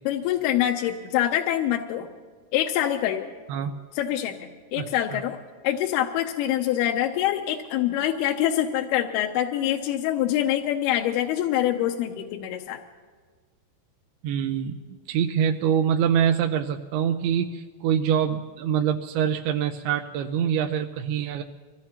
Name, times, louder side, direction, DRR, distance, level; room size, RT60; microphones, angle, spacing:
voice 1, 0.1-2.1 2.5-3.3 4.0-5.4 5.6-12.8, left 12 dB, 80° left, 2 dB, 2.5 m, -25 dB
voice 2, 4.8-5.2 14.2-21.4, right 8 dB, 80° right, 4 dB, 2.4 m, -25 dB
24.5 x 17.0 x 2.9 m, 1.5 s
omnidirectional pair, 4.8 m